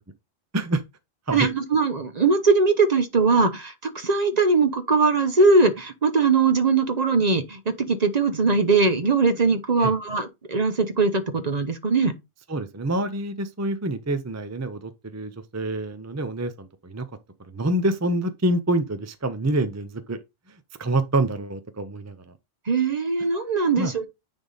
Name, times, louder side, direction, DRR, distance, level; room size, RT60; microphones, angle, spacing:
voice 1, 1.3-12.1 22.7-24.1, right 4 dB, 40° right, 0.8 m, -21 dB
voice 2, 12.5-17.1 17.5-20.2 20.8-22.2 23.8-23.9, right 1 dB, 20° right, 0.4 m, -26 dB
9.7 x 3.6 x 4.1 m
omnidirectional pair, 1.3 m